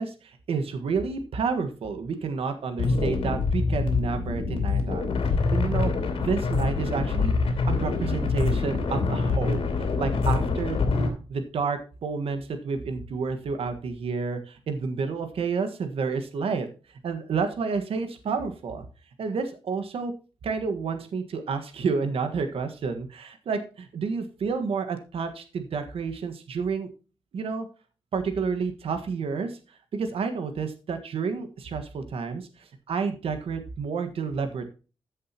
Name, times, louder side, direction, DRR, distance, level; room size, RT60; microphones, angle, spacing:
voice 1, 0.0-5.1 5.5-5.9 6.2-7.3 7.7-10.8 11.3-16.7 17.0-18.8 19.2-20.1 20.4-26.9 27.3-27.7 28.1-29.6 29.9-34.7, right 5 dB, 80° right, 8 dB, 1.5 m, -30 dB
sound 1, 2.8-11.1, left 4 dB, 75° left, 3.4 m, -25 dB
14.0 x 7.5 x 2.9 m, 0.34 s
wide cardioid pair, 180°, 10 cm